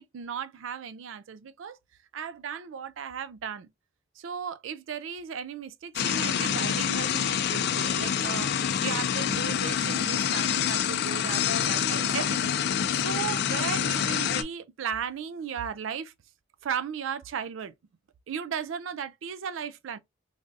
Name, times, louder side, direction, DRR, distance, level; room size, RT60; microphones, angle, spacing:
voice 1, 0.0-1.8 2.1-3.7 4.2-12.6 13.0-16.1 16.6-17.7 18.3-20.0, right 7 dB, 75° right, 0.4 m, -36 dB
sound 1, 6.0-14.4, left 8 dB, 55° left, 0.3 m, -27 dB
3.2 x 2.6 x 2.4 m
head